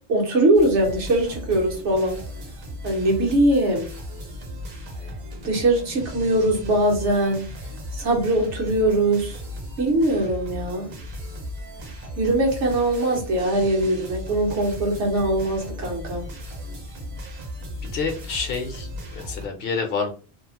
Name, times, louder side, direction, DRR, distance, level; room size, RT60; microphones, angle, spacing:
voice 1, 0.1-2.2 2.8-3.9 5.4-9.4 9.8-10.9 12.2-16.2, right 1 dB, 85° right, 0 dB, 1.3 m, -21 dB
sound 1, 0.5-19.5, equal, 70° right, 1.0 m, -36 dB
voice 2, 17.8-20.1, left 5 dB, 65° left, 4 dB, 0.7 m, -28 dB
2.9 x 2.0 x 2.8 m, 0.37 s
omnidirectional pair, 1.1 m